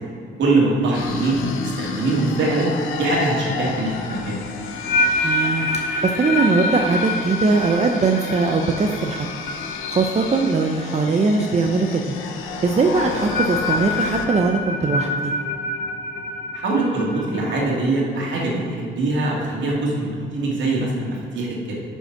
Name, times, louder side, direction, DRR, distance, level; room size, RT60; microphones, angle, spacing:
voice 1, 0.4-1.4 1.8-2.7 3.0-4.4 16.5-21.7, right 2 dB, 70° right, -3 dB, 2.4 m, -22 dB
sound 1, 0.9-14.3, left 5 dB, 90° left, 0.8 m, -32 dB
sound 2, 3.9-11.1 11.3-11.7 13.0-17.6, left 2 dB, 55° left, 1.4 m, -27 dB
voice 2, 5.2-9.3 9.9-12.1 12.6-15.3, right 4 dB, 35° right, 2 dB, 0.7 m, -20 dB
9.3 x 5.5 x 5.9 m, 2.3 s
cardioid pair, 90°, 20 cm